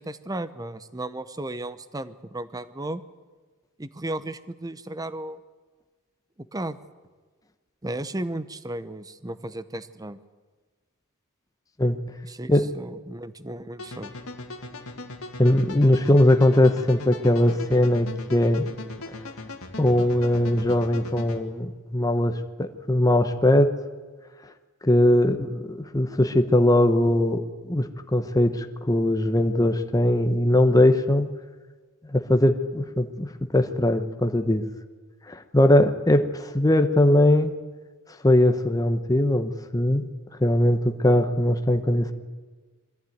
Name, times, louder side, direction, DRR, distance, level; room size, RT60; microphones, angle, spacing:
voice 1, 0.0-3.0 3.8-5.4 6.5-6.8 7.8-10.2 12.2-12.5 12.7-14.1, right 1 dB, 15° right, 14 dB, 0.8 m, -34 dB
sound 1, 13.8-21.4, left 2 dB, 80° left, 2.0 m, -39 dB
voice 2, 15.4-18.7 19.8-23.7 24.8-31.3 32.1-34.7 35.3-37.5 38.2-40.1 40.4-42.1, left 1 dB, 15° left, 7 dB, 0.9 m, -20 dB
22.0 x 14.5 x 9.3 m, 1.4 s
head